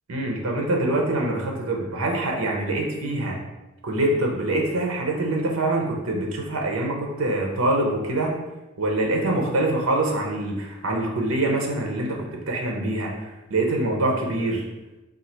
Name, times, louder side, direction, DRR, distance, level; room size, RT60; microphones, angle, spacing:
voice 1, 0.1-3.4 3.8-8.3 8.8-13.1 13.5-14.6, right 2 dB, 85° right, 0 dB, 0.8 m, -24 dB
3.8 x 2.5 x 4.4 m, 1.0 s
head